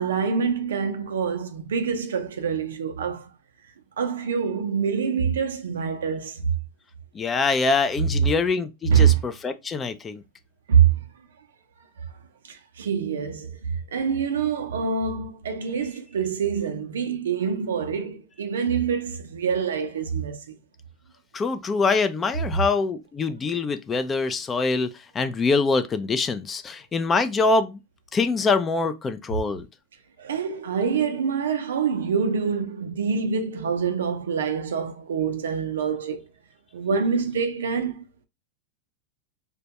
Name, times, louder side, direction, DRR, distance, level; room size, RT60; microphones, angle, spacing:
voice 1, 0.0-3.3 4.0-6.5 8.9-9.2 10.7-11.0 12.5-20.5 30.2-36.2 36.7-38.3, right 7 dB, 90° right, 0.4 m, -25 dB
voice 2, 7.1-10.2 21.3-24.9 25.1-27.8 28.1-29.7, left 4 dB, 25° left, 0.3 m, -24 dB
2.2 x 2.2 x 2.7 m
hypercardioid pair, 110°, 0 cm